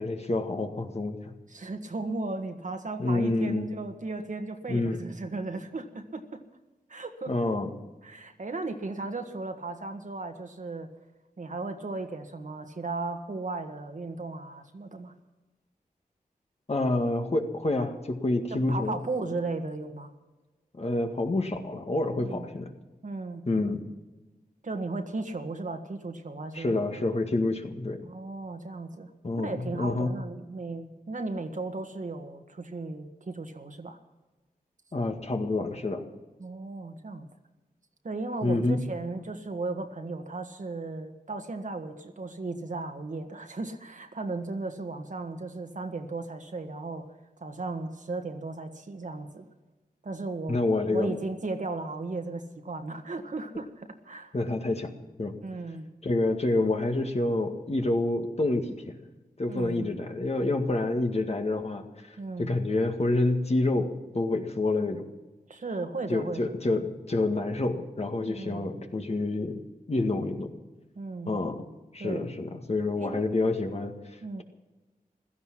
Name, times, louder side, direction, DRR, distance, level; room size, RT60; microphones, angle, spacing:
voice 1, 0.0-1.3 3.0-3.7 4.7-5.0 7.3-7.7 16.7-19.0 20.7-22.7 23.5-23.8 26.5-28.0 29.2-30.1 34.9-36.0 38.4-38.8 50.5-51.1 54.3-54.9 55.2-55.4 56.0-59.0 59.4-65.1 66.1-69.6 69.9-70.5 71.3-71.6 71.9-73.9, left 2 dB, 45° left, 4 dB, 1.8 m, -28 dB
voice 2, 1.5-6.4 6.9-7.3 8.0-10.9 11.4-15.1 18.5-20.1 22.2-22.5 23.0-23.4 24.6-26.8 28.0-29.1 29.4-34.0 36.4-37.3 38.0-47.1 47.4-49.5 50.0-50.6 50.9-54.4 55.4-55.9 59.5-59.9 62.2-62.5 65.5-66.6 68.2-68.7 71.0-71.3 72.0-72.3 73.0-73.2 74.2-74.4, right 3 dB, 55° right, 5 dB, 1.6 m, -36 dB
16.5 x 13.0 x 6.0 m, 1.1 s
wide cardioid pair, 65°, 15 cm